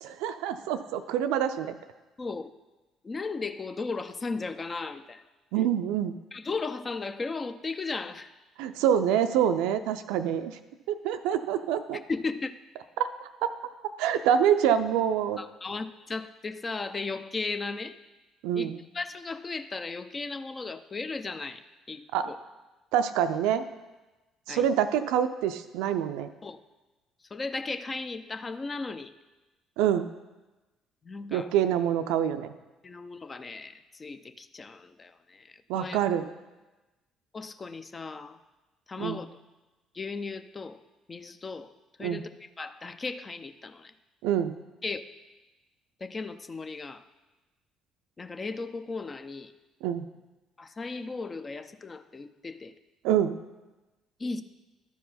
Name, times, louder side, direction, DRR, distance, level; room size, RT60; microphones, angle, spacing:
voice 1, 0.0-1.8 5.5-6.1 8.6-10.5 10.9-12.0 13.0-13.5 14.0-15.4 18.4-18.8 22.1-22.3 22.9-23.7 24.5-26.3 29.8-30.1 31.3-32.5 35.7-36.3 39.0-39.2 42.0-42.2 44.2-44.5 49.8-50.1 53.0-53.3, right 9 dB, 70° right, 10 dB, 0.4 m, -26 dB
voice 2, 2.2-2.5 3.0-5.2 6.3-8.3 12.1-12.5 15.4-17.9 18.5-18.7 18.9-21.6 21.9-22.4 24.5-24.7 26.4-26.6 27.3-29.1 31.0-31.5 32.8-36.0 37.3-38.4 38.9-39.4 39.9-40.8 41.1-41.7 42.0-42.3 42.6-43.9 44.8-45.0 46.0-47.0 48.2-49.5 50.6-52.7 54.2-54.4, left 4 dB, 30° left, 10 dB, 0.6 m, -36 dB
12.5 x 4.7 x 4.2 m, 1.1 s
hypercardioid pair, 50°, 0 cm